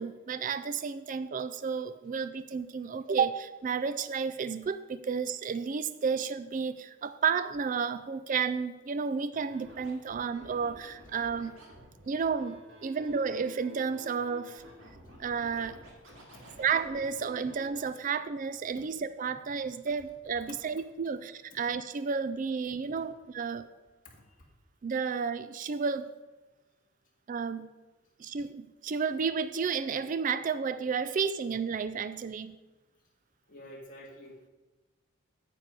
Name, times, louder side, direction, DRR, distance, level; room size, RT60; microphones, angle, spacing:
voice 1, 0.0-11.6 12.1-14.6 15.2-15.8 16.6-23.7 24.8-26.1 27.3-27.7 28.2-32.6, right 6 dB, 35° right, 13 dB, 0.3 m, -32 dB
Scratching (performance technique), 9.3-17.8, equal, 60° right, 2.3 m, -51 dB
voice 2, 16.1-16.6 24.0-24.2 33.5-34.5, equal, 40° left, -2 dB, 2.0 m, -50 dB
8.9 x 7.8 x 5.2 m, 1.2 s
head